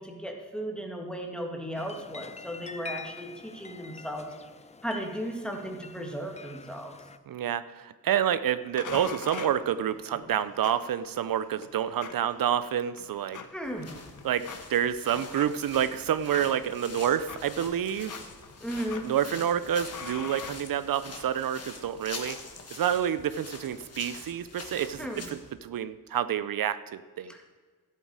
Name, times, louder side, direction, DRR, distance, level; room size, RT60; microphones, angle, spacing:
voice 1, 0.0-4.3 4.8-6.9 13.5-13.9 18.6-19.1 25.0-25.3 27.3-27.4, equal, ahead, 2 dB, 1.6 m, -35 dB
sound 1, 1.7-7.2, left 4 dB, 20° left, 0.4 m, -46 dB
voice 2, 7.3-13.4 14.2-18.2 19.0-22.4 22.7-27.4, right 9 dB, 75° right, 14 dB, 0.5 m, -28 dB
sound 2, 8.8-21.3, left 6 dB, 60° left, 0.8 m, -45 dB
sound 3, 13.6-25.5, left 4 dB, 45° left, 1.5 m, -45 dB
14.0 x 8.4 x 4.7 m, 1.5 s
wide cardioid pair, 155°, 34 cm